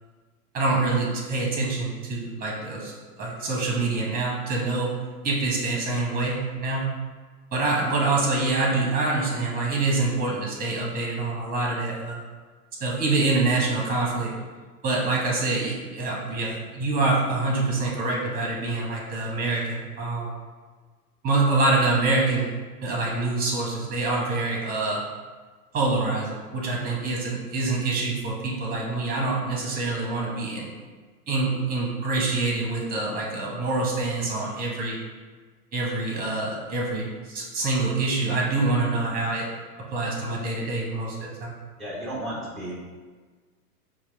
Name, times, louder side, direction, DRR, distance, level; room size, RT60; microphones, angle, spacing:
voice 1, 0.5-4.9 5.2-6.9 7.5-12.3 12.8-14.3 14.8-20.3 21.2-22.5 22.8-25.0 25.7-30.7 31.3-35.0 35.7-39.5 39.9-41.6, right 3 dB, 20° right, -2 dB, 0.9 m, -26 dB
voice 2, 41.8-42.7, right 1 dB, ahead, -7 dB, 0.3 m, -33 dB
4.4 x 2.3 x 3.3 m, 1.4 s
hypercardioid pair, 110°, 46 cm